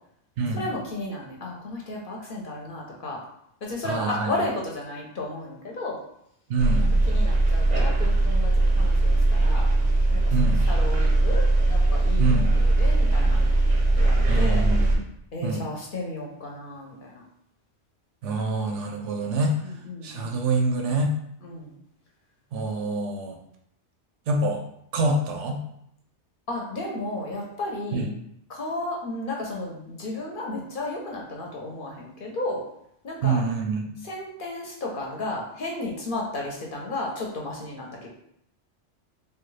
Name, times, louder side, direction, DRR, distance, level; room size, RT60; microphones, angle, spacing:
voice 1, 0.5-3.2 3.6-6.0 7.1-9.7 10.1-13.4 13.9-14.7 15.3-17.2 19.6-20.4 21.4-21.8 26.5-28.1 28.5-32.6 33.0-33.4 34.0-38.1, left 2 dB, 55° left, -2 dB, 0.8 m, -33 dB
voice 2, 3.8-4.3 6.5-6.9 10.3-10.6 12.2-12.5 14.3-15.0 15.4-15.7 18.2-19.6 20.0-21.1 22.5-23.4 24.3-24.6 24.9-25.6 27.9-28.1 33.2-33.9, right 2 dB, 90° right, 3 dB, 0.9 m, -26 dB
sound 1, 6.6-15.0, right 2 dB, 50° right, 0.6 m, -20 dB
3.3 x 2.3 x 3.1 m, 0.73 s
omnidirectional pair, 1.2 m